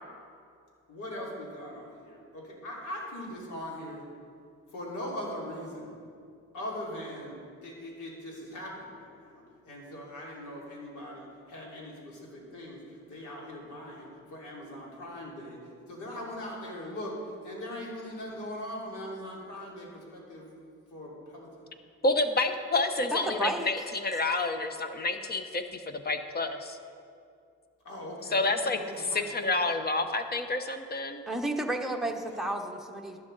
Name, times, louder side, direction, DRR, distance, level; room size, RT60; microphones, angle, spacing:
voice 1, 0.9-4.0 4.7-6.0 6.5-7.3 7.6-12.8 13.1-15.6 15.9-17.2 17.4-20.5 20.9-21.5 27.8-29.5 32.1-32.4, left 1 dB, 80° left, -3 dB, 3.0 m, -40 dB
voice 2, 22.0-26.8 28.3-31.2, left 2 dB, 30° left, 8 dB, 0.9 m, -29 dB
voice 3, 23.1-23.7 31.3-33.2, right 1 dB, ahead, 2 dB, 1.0 m, -32 dB
12.0 x 11.5 x 4.0 m, 2.4 s
cardioid pair, 90°, 30 cm